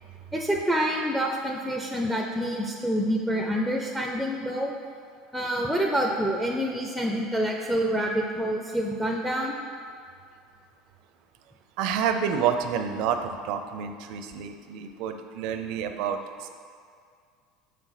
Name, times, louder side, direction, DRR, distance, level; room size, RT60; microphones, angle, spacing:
voice 1, 0.3-4.7 5.3-9.5, equal, 5° left, 0 dB, 0.6 m, -27 dB
voice 2, 11.8-16.6, right 7 dB, 65° right, 7 dB, 0.5 m, -29 dB
5.8 x 3.6 x 5.9 m, 2.2 s
supercardioid pair, 95°, 0 cm